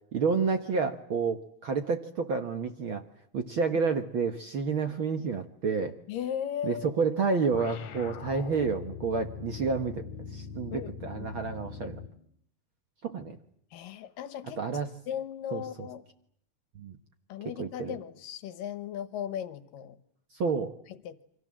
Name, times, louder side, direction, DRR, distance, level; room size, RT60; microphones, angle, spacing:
voice 1, 0.1-3.0 3.3-5.9 6.6-12.0 13.0-13.4 14.6-14.9 15.5-15.9 16.7-17.0 17.6-18.0 20.3-20.7, right 5 dB, 55° right, 7 dB, 1.5 m, -30 dB
voice 2, 6.1-6.9 10.7-11.3 13.7-14.6 15.1-16.0 17.3-20.0 20.9-21.2, left 9 dB, 85° left, 13 dB, 3.0 m, -37 dB
sound 1, 7.5-12.2, left 6 dB, 60° left, 2.6 m, -42 dB
29.0 x 25.0 x 7.6 m, 0.67 s
omnidirectional pair, 3.9 m